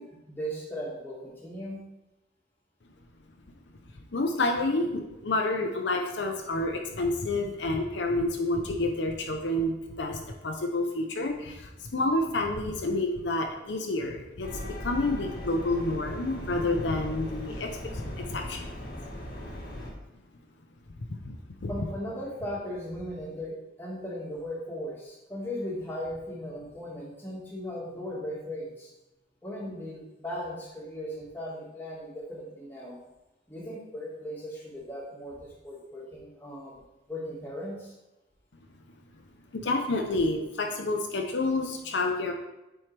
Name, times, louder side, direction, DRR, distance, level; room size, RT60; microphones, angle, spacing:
voice 1, 0.0-1.8 21.7-28.9 29.4-33.0 33.5-35.4 35.6-36.8 37.1-37.9, equal, 10° left, -5 dB, 1.7 m, -37 dB
voice 2, 4.1-18.7 21.2-21.4 21.6-21.7 39.5-42.3, left 2 dB, 70° left, 3 dB, 0.6 m, -29 dB
sound 1, 14.4-19.9, left 1 dB, 45° left, 1.2 m, -38 dB
7.6 x 4.4 x 3.3 m, 0.98 s
head